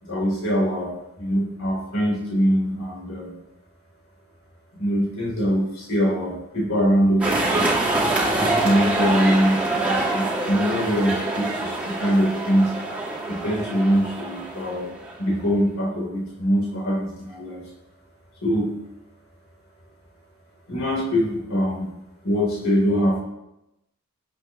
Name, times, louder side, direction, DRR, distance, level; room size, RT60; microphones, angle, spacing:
voice 1, 0.0-3.3 4.7-7.7 8.3-17.6 18.4-18.7 20.7-21.9 22.2-23.2, equal, 65° left, -3 dB, 3.5 m, -23 dB
sound 1, 7.2-15.3, right 2 dB, 5° right, 2.3 m, -25 dB
16.0 x 8.2 x 3.1 m, 0.88 s
head